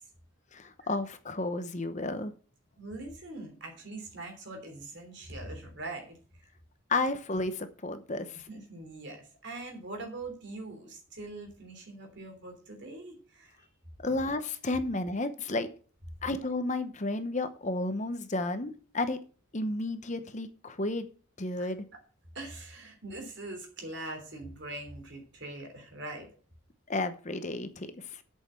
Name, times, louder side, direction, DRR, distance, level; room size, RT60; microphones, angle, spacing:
voice 1, 0.5-2.3 6.9-8.4 14.0-15.7 16.2-19.2 19.5-21.1 21.4-21.8 26.9-28.2, left 2 dB, 35° left, 10 dB, 0.8 m, -32 dB
voice 2, 2.8-6.2 8.5-13.7 18.3-18.4 21.6-22.0 22.3-26.3, right 2 dB, 55° right, 3 dB, 3.4 m, -42 dB
8.5 x 6.5 x 7.5 m, 0.39 s
head